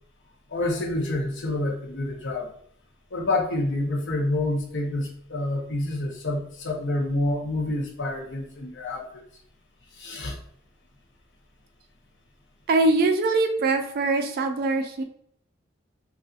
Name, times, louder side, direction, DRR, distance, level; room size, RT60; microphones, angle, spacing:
voice 1, 0.5-2.5 3.1-9.0 9.9-10.4, left 2 dB, 65° left, 0 dB, 0.6 m, -28 dB
voice 2, 12.7-15.0, right 3 dB, 50° right, 5 dB, 0.3 m, -22 dB
2.5 x 2.4 x 2.3 m, 0.64 s
head